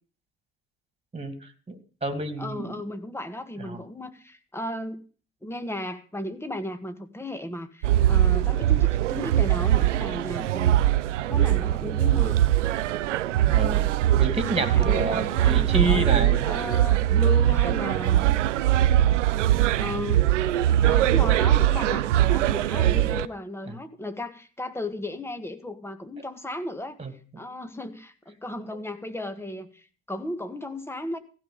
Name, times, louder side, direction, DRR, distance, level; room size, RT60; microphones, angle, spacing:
voice 1, 1.7-2.7 3.6-3.8 10.4-10.5 13.4-13.9 14.2-16.5 23.7-23.8 27.0-27.1, right 2 dB, 15° right, 9 dB, 2.6 m, -29 dB
voice 2, 2.4-5.0 5.4-10.8 11.3-12.3 14.4-16.0 16.4-18.3 19.8-20.3 20.8-27.0 27.4-31.2, left 1 dB, 5° left, 9 dB, 1.7 m, -35 dB
sound 1, 7.8-23.3, right 12 dB, 80° right, 0.5 m, -22 dB
15.0 x 5.5 x 9.3 m, 0.39 s
figure-of-eight pair, 60°, 36 cm